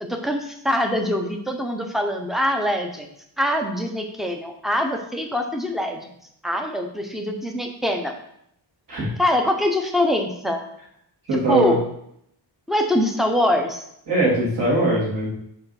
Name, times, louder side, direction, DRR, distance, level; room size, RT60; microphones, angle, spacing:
voice 1, 0.0-3.1 3.4-6.1 6.4-8.2 9.2-10.6 11.3-11.8 12.7-13.9, left 1 dB, ahead, 3 dB, 0.7 m, -23 dB
voice 2, 11.3-11.8 14.1-15.3, right 1 dB, 50° right, -6 dB, 3.1 m, -21 dB
5.7 x 4.8 x 5.8 m, 0.73 s
wide cardioid pair, 175°, 43 cm